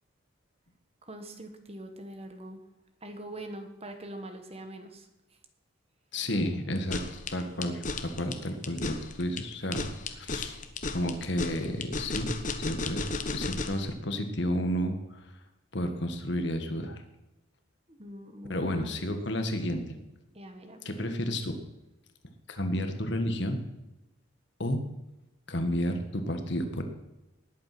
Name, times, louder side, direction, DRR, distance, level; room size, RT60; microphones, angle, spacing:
voice 1, 1.0-2.6 3.0-5.4 17.9-19.0 20.3-20.9, right 1 dB, 30° right, 7 dB, 1.4 m, -43 dB
voice 2, 6.1-10.6 10.9-12.3 12.6-15.3 15.7-17.0 18.5-20.0 20.8-21.6 22.5-23.6 24.6-24.8 25.5-26.8, equal, 55° left, 6 dB, 1.7 m, -31 dB
sound 1, 6.7-13.9, left 3 dB, 40° left, 1.1 m, -34 dB
19.0 x 8.5 x 6.1 m, 0.96 s
head